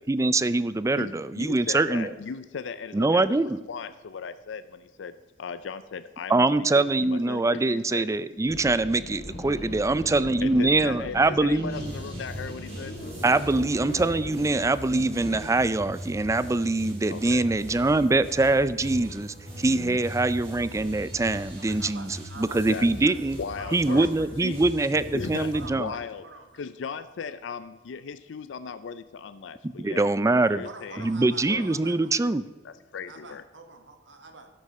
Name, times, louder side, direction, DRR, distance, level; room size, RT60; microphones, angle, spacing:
voice 1, 0.1-2.1 2.9-3.6 6.3-11.9 13.2-23.4 23.7-25.9 29.6-30.6 31.0-32.4, right 2 dB, 15° right, 15 dB, 0.4 m, -24 dB
voice 2, 0.9-8.1 10.4-13.0 17.1-17.4 19.7-20.0 22.7-22.9 23.4-24.1 24.4-24.6 25.1-26.3 26.5-30.1 30.5-31.1 31.4-31.6 32.6-33.4, left 6 dB, 75° left, 12 dB, 0.4 m, -37 dB
sound 1, 8.5-15.7, equal, 55° left, 2.4 m, -39 dB
sound 2, 11.7-25.7, equal, 35° right, 4.2 m, -40 dB
voice 3, 21.7-22.6 23.0-24.3 25.5-26.6 30.4-32.3 33.1-34.5, right 3 dB, 75° right, 5 dB, 1.5 m, -46 dB
12.5 x 10.5 x 4.2 m, 1.3 s
head